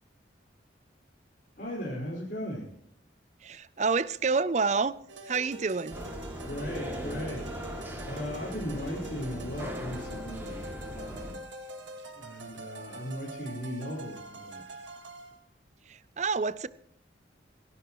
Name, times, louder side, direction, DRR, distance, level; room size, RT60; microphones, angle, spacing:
voice 1, 1.6-2.7 6.4-7.5 8.0-11.4 12.1-14.8, equal, 45° left, 4.9 m, -37 dB
voice 2, 3.4-4.9 5.3-6.0 15.9-16.7, right 4 dB, 35° right, 0.5 m, -28 dB
sound 1, 5.1-15.4, right 1 dB, 75° right, 1.8 m, -44 dB
sound 2, 5.9-11.3, equal, 10° right, 2.5 m, -39 dB
26.5 x 11.5 x 3.1 m
head